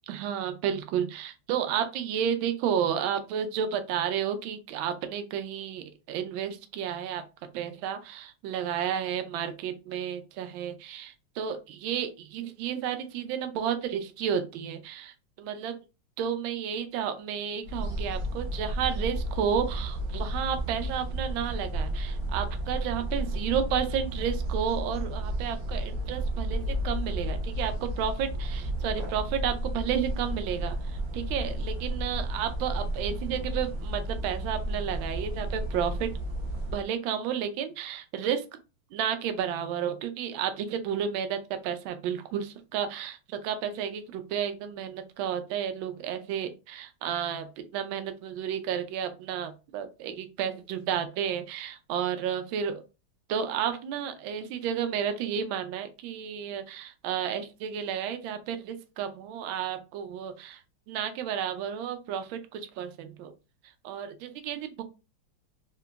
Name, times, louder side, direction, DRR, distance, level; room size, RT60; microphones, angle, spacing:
voice 1, 0.1-7.2 7.5-15.8 16.2-36.1 36.7-38.4 38.9-52.8 53.3-60.6 60.9-63.3 63.8-64.8, right 8 dB, 75° right, 7 dB, 1.3 m, -32 dB
sound 1, 17.6-36.8, right 1 dB, 50° right, 0.9 m, -32 dB
3.8 x 2.9 x 2.2 m, 0.30 s
omnidirectional pair, 2.3 m